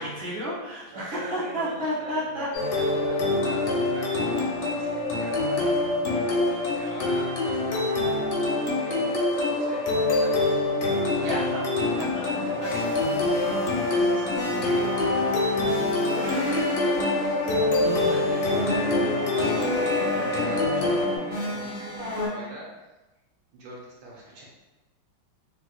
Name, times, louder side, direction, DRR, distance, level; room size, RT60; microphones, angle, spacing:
voice 1, 0.0-2.5 10.6-10.7 11.1-13.1 14.4-14.6, equal, 35° right, -8 dB, 0.4 m, -33 dB
voice 2, 0.9-2.4 2.7-4.1 4.7-5.9 6.4-11.5 13.3-15.3 15.7-17.5 18.0-19.2 19.7-22.7 23.5-24.4, right 1 dB, 75° right, -4 dB, 1.5 m, -43 dB
sound 1, 2.5-21.2, left 2 dB, 65° left, 1.2 m, -25 dB
sound 2, 11.9-22.3, left 1 dB, 40° left, 1.3 m, -30 dB
3.4 x 2.9 x 2.2 m, 1.1 s
omnidirectional pair, 2.2 m